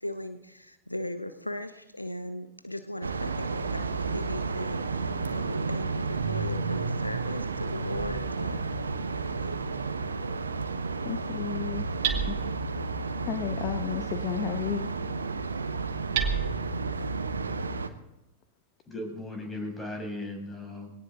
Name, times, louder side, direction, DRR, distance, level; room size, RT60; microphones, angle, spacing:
voice 1, 0.0-9.0 9.4-9.7, left 1 dB, 85° left, 10 dB, 1.0 m, -38 dB
sound 1, 3.0-17.9, right 4 dB, 75° right, 1.3 m, -32 dB
Hammer, 7.9-17.7, right 5 dB, 50° right, 2.2 m, -37 dB
voice 2, 11.0-11.9 12.3-12.4 13.2-14.9, left 10 dB, 40° left, 8 dB, 1.3 m, -33 dB
voice 3, 18.9-21.0, left 1 dB, 15° left, 2 dB, 6.3 m, -37 dB
21.5 x 17.5 x 3.8 m, 0.89 s
figure-of-eight pair, 90°, 0 cm